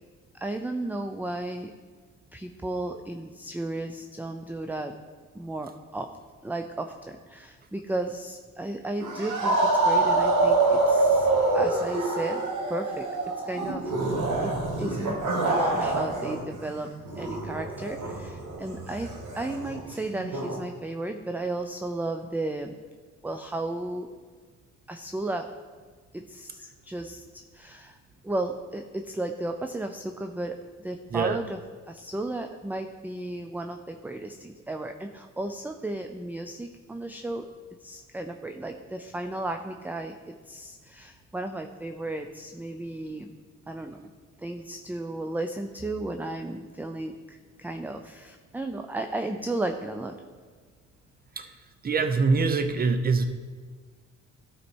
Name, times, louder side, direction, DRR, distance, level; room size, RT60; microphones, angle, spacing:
voice 1, 0.4-1.7 2.3-4.9 5.3-6.1 6.4-11.3 11.5-12.4 12.7-13.1 13.5-14.2 14.4-15.2 15.5-22.8 23.2-24.1 24.9-25.5 26.1-28.0 28.2-31.6 31.9-37.5 37.8-43.3 43.7-44.0 44.4-50.2, right 2 dB, 5° right, 5 dB, 0.4 m, -34 dB
sound 1, 9.0-16.4 16.7-20.6, right 2 dB, 80° right, 2.2 m, -26 dB
voice 2, 51.8-53.3, right 4 dB, 30° right, 8 dB, 0.8 m, -24 dB
12.5 x 4.3 x 4.4 m, 1.5 s
cardioid pair, 90°, 30 cm